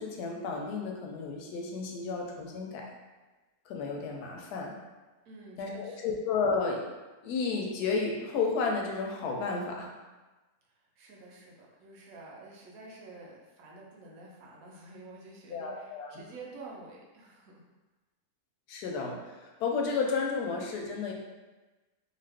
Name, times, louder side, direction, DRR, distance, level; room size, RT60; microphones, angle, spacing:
voice 1, 0.0-2.9 3.7-4.7 5.6-6.8 7.2-9.9 15.5-16.2 18.7-21.1, left 4 dB, 85° left, 0 dB, 1.1 m, -32 dB
voice 2, 5.2-6.2 10.6-17.7, right 3 dB, 70° right, -2 dB, 1.0 m, -49 dB
2.7 x 2.4 x 3.4 m, 1.2 s
omnidirectional pair, 1.6 m